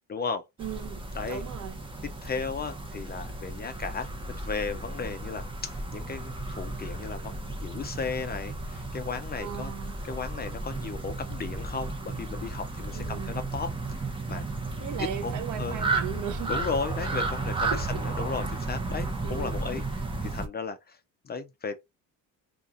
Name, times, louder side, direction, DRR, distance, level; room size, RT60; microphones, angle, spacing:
voice 1, 0.1-0.4 1.1-1.4 2.2-4.1 4.4-9.7 10.0-14.0 14.3-14.4 15.0-15.3 15.6-15.8 16.5-21.0 21.2-21.9, left 5 dB, 25° left, 0.4 m, -35 dB
sound 1, 0.6-20.5, right 2 dB, 15° right, 0.8 m, -34 dB
voice 2, 0.6-1.8 9.4-10.0 12.9-13.4 14.8-16.5 17.7-17.8 19.2-19.5, right 10 dB, 50° right, 0.5 m, -37 dB
2.7 x 2.4 x 3.6 m
cardioid pair, 135°, 39 cm